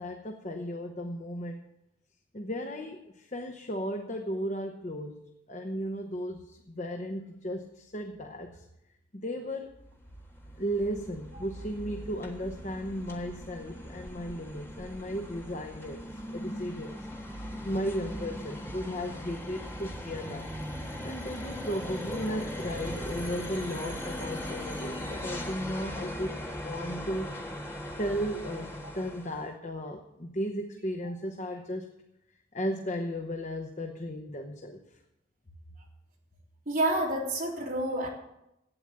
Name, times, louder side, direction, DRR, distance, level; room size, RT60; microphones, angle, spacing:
voice 1, 0.0-1.6 2.3-8.6 9.1-9.7 10.6-17.0 17.6-20.5 21.0-27.3 28.0-31.9 32.5-34.8, equal, 35° left, 3 dB, 0.9 m, -35 dB
sound 1, 9.7-29.5, equal, 15° left, 1.4 m, -39 dB
voice 2, 36.7-38.1, right 1 dB, 45° right, -4 dB, 3.8 m, -29 dB
12.0 x 9.1 x 7.6 m, 0.85 s
head